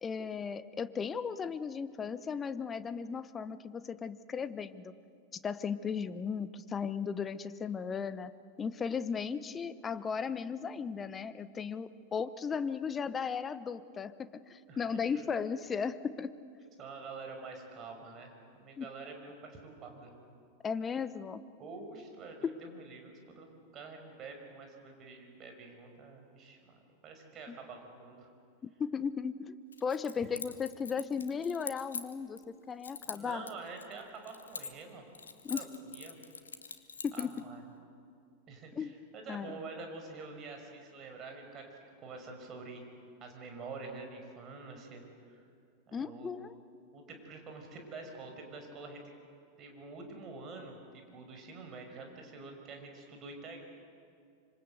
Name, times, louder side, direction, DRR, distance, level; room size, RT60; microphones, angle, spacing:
voice 1, 0.0-4.9 5.4-8.3 8.6-16.3 18.8-18.9 20.6-21.4 22.4-22.5 27.5-27.6 28.6-29.6 29.8-33.4 35.4-35.7 37.0-37.3 38.7-38.9 39.3-39.6 45.9-46.5, left 6 dB, 20° left, 14 dB, 1.0 m, -36 dB
voice 2, 14.7-15.3 16.8-20.1 21.6-28.3 30.1-30.3 33.0-35.1 35.5-35.7 35.9-36.2 37.1-37.6 38.5-41.7 42.0-42.8 43.2-45.4 45.9-46.5 46.9-49.0 49.6-53.6, right 3 dB, 30° right, 4 dB, 5.7 m, -47 dB
Keys jangling, 29.7-32.4 32.8-34.9 35.1-37.4, left 5 dB, 70° left, 1.6 m, -44 dB
26.0 x 25.5 x 8.0 m, 2.3 s
figure-of-eight pair, 90°, 0 cm